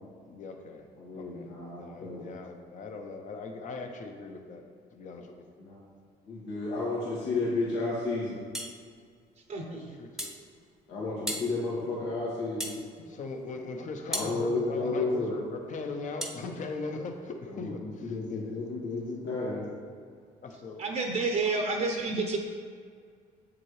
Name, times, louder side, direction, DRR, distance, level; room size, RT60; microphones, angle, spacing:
voice 1, 0.3-0.8 1.2-1.5 1.8-4.6 4.9-5.5 9.7-10.3 13.1-18.6 20.4-20.8, left 3 dB, 50° left, 4 dB, 0.9 m, -39 dB
voice 2, 1.0-2.3 5.6-5.8 6.3-8.4 10.9-12.7 14.1-15.4 17.5-19.7, left 3 dB, 85° left, -8 dB, 2.0 m, -32 dB
sound 1, 8.5-8.8 10.2-10.4 11.3-11.5 12.6-12.8 14.1-14.3 16.2-16.4, equal, 5° right, 0.9 m, -34 dB
voice 3, 9.5-10.0 20.8-22.4, right 3 dB, 45° right, 2 dB, 0.8 m, -29 dB
7.5 x 7.4 x 3.3 m, 2.1 s
cardioid pair, 110°, 17 cm